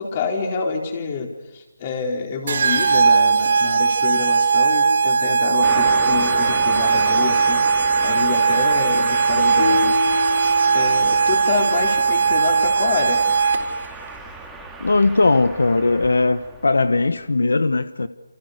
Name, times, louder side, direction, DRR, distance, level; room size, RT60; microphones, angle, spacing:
voice 1, 0.0-10.4 10.7-13.3, left 5 dB, 30° left, 4.3 m, -27 dB
sound 1, 2.5-13.9, right 5 dB, 50° right, 4.2 m, -18 dB
Car passing by, 5.6-17.1, right 3 dB, 5° right, 2.3 m, -34 dB
sound 2, 9.6-11.7, left 6 dB, 45° left, 5.0 m, -28 dB
voice 2, 14.8-18.1, left 3 dB, 85° left, 1.3 m, -19 dB
29.0 x 29.0 x 6.7 m
hypercardioid pair, 170°, 0 cm